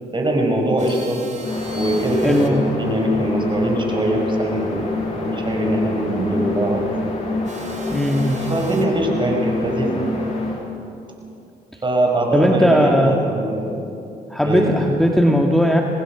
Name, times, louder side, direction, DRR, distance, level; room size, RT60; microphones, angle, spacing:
voice 1, 0.1-1.2 1.7-4.9 5.2-6.8 8.4-10.1 11.8-13.7 14.4-14.7, right 1 dB, 25° right, 1 dB, 5.6 m, -22 dB
sound 1, 0.8-2.5 7.4-8.9, right 4 dB, 45° right, 3.1 m, -41 dB
sound 2, 0.9-2.8, right 1 dB, 60° left, 6.2 m, -41 dB
sound 3, 1.3-10.6, left 2 dB, 35° left, 7.6 m, -26 dB
voice 2, 2.2-2.6 7.9-8.4 12.3-13.2 14.3-15.8, equal, ahead, 1 dB, 1.8 m, -17 dB
26.0 x 19.0 x 6.1 m, 2.7 s
cardioid pair, 70°, 18 cm